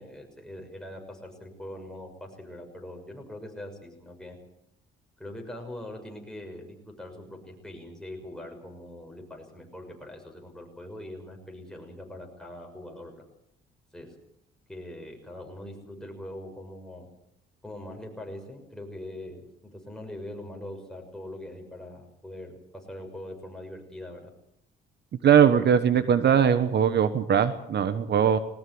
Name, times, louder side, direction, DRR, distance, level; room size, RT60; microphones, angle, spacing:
voice 1, 0.0-4.4 5.2-13.2 13.9-14.1 14.7-17.1 17.6-24.3, left 1 dB, 5° left, 1 dB, 6.3 m, -42 dB
voice 2, 25.2-28.4, right 8 dB, 60° right, 12 dB, 1.2 m, -20 dB
20.0 x 19.0 x 7.9 m, 0.79 s
cardioid pair, 90°, 20 cm